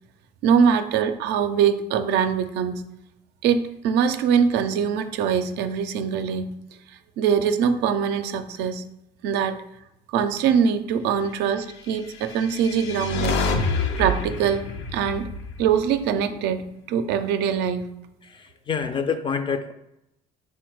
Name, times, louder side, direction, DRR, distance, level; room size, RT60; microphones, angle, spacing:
voice 1, 0.4-2.8 3.4-6.6 7.2-8.8 9.2-9.6 10.1-13.4 14.0-15.3 15.6-17.9, right 7 dB, 85° right, 9 dB, 0.4 m, -23 dB
sound 1, 12.2-16.5, left 3 dB, 90° left, 0.5 m, -28 dB
voice 2, 18.2-19.7, left 6 dB, 30° left, 9 dB, 0.3 m, -27 dB
4.2 x 2.1 x 4.6 m, 0.86 s
cardioid pair, 110°, 17 cm